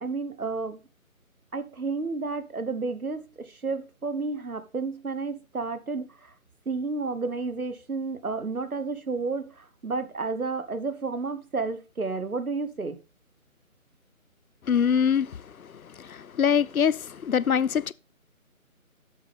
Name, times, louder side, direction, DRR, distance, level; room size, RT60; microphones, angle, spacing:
voice 1, 0.0-0.8 1.5-6.3 6.6-13.0, right 4 dB, 80° right, 1.3 m, -31 dB
voice 2, 14.7-15.7 16.0-17.9, left 7 dB, 75° left, 0.6 m, -24 dB
8.0 x 7.9 x 3.5 m
figure-of-eight pair, 155°, 43 cm